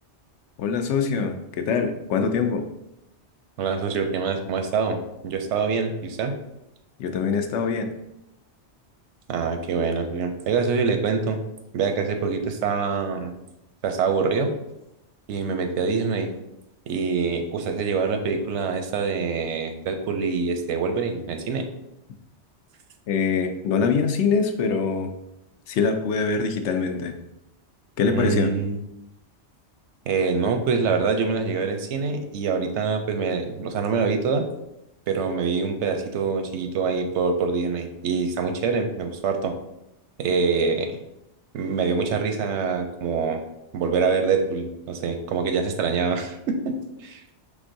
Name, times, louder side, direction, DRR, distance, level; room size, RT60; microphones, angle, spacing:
voice 1, 0.6-2.7 7.0-7.9 23.1-25.1 25.7-27.1 28.0-28.5, left 5 dB, 80° left, 5 dB, 0.9 m, -23 dB
voice 2, 3.6-6.4 9.3-11.4 11.7-13.3 13.8-14.5 15.3-16.3 16.9-21.7 28.1-28.8 30.1-34.5 35.1-39.5 40.2-41.0 41.5-43.4 43.7-47.2, right 5 dB, 85° right, 6 dB, 0.9 m, -25 dB
5.1 x 3.5 x 2.6 m, 0.87 s
omnidirectional pair, 1.2 m